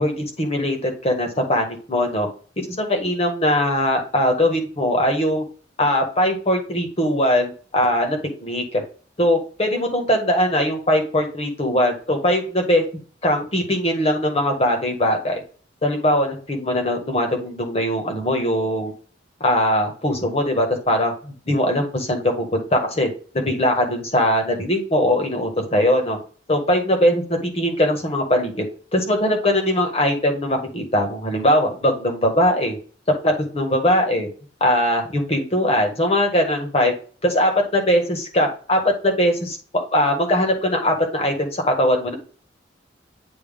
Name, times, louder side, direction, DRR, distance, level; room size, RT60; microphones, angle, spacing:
voice 1, 0.0-2.3 2.6-5.4 5.8-8.8 9.2-12.8 13.2-15.4 15.8-18.9 19.4-23.1 23.3-26.2 26.5-28.6 28.9-32.8 33.2-34.3 34.6-36.9 37.2-39.6 39.9-42.1, left 1 dB, 35° left, 3 dB, 1.6 m, -21 dB
9.2 x 3.1 x 3.6 m, 0.41 s
head